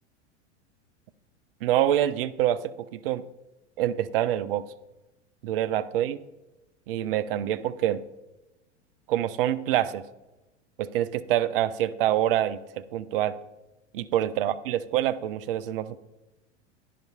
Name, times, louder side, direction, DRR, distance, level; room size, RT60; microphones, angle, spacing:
voice 1, 1.6-3.2 3.8-4.7 5.4-6.2 6.9-8.0 9.1-10.0 10.8-13.3 13.9-16.0, right 12 dB, 50° right, 14 dB, 0.5 m, -26 dB
11.0 x 10.5 x 2.3 m, 1.0 s
figure-of-eight pair, 90°, 36 cm